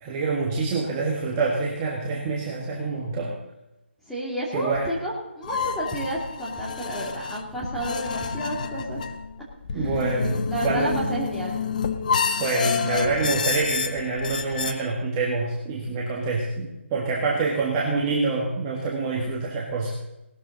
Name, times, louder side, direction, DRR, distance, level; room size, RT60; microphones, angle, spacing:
voice 1, 0.0-3.4 4.5-4.9 9.7-11.0 12.4-19.9, right 3 dB, 15° right, -3 dB, 1.5 m, -26 dB
voice 2, 4.1-9.0 9.7-9.9 10.5-11.6, right 1 dB, ahead, -7 dB, 2.5 m, -31 dB
sound 1, 5.4-14.7, left 6 dB, 40° left, 1.0 m, -29 dB
18.5 x 13.0 x 3.9 m, 0.94 s
hypercardioid pair, 165°, 7 cm